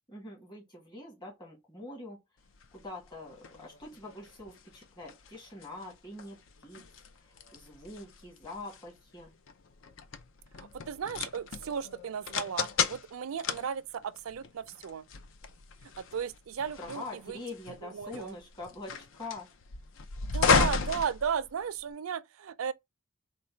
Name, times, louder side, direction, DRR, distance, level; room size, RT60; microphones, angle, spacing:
voice 1, 0.1-2.2 2.7-6.8 7.1-9.3 16.8-19.5, left 2 dB, 20° left, 1.6 m, -44 dB
sound 1, 2.5-21.9, left 5 dB, 65° left, 0.5 m, -34 dB
voice 2, 10.6-15.0 15.8-17.4 17.8-18.3 20.2-22.7, right 7 dB, 85° right, 0.4 m, -35 dB
4.0 x 2.2 x 4.4 m
head